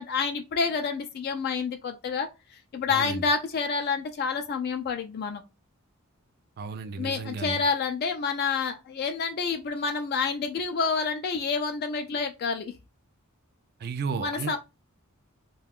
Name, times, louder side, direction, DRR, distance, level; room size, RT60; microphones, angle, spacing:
voice 1, 0.0-2.3 2.7-5.4 7.0-12.7 14.2-14.6, left 5 dB, 45° left, 0.3 m, -28 dB
voice 2, 2.9-3.2 6.6-7.6 13.8-14.6, right 4 dB, 45° right, 0.3 m, -33 dB
2.3 x 2.2 x 3.4 m
head